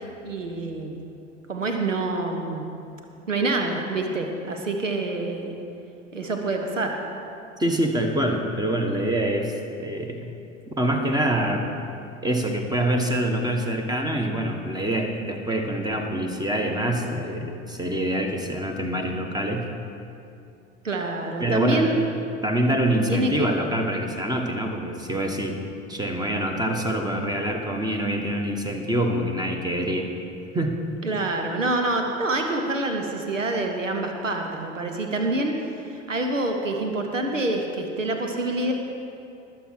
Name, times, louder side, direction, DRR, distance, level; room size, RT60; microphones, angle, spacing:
voice 1, 0.2-1.0 1.5-2.7 3.3-5.6 6.1-7.0 20.8-22.0 23.1-23.5 31.0-35.5 35.9-38.7, right 2 dB, 85° right, 4 dB, 1.0 m, -26 dB
voice 2, 7.6-9.5 9.8-10.2 10.7-11.6 12.2-19.7 21.4-21.9 22.4-25.6 25.9-30.1 30.5-30.8, right 1 dB, 10° right, 3 dB, 1.5 m, -25 dB
20.0 x 7.4 x 4.7 m, 2.6 s
figure-of-eight pair, 70°, 37 cm